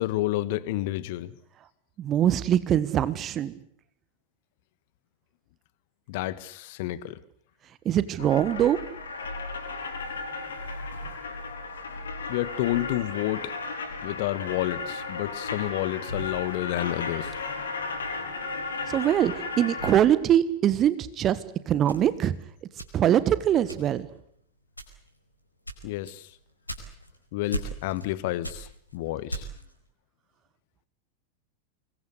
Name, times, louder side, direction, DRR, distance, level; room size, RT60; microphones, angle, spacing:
voice 1, 0.0-1.3 6.1-7.2 12.3-13.5 14.0-17.3 25.8-26.3 27.3-29.5, left 15 dB, 50° left, 18 dB, 1.5 m, -30 dB
voice 2, 2.0-3.5 7.8-8.8 18.9-22.3 22.9-24.1, right 10 dB, 30° right, 16 dB, 1.5 m, -23 dB
sound 1, 8.2-20.0, left 3 dB, 70° left, 5.3 m, -35 dB
sound 2, 21.9-23.3 23.7-24.1 24.7-25.2 25.7-27.2 27.5-28.1 28.4-29.7, right 1 dB, 90° left, 4.7 m, -37 dB
25.5 x 21.5 x 8.2 m, 0.68 s
figure-of-eight pair, 90°, 0 cm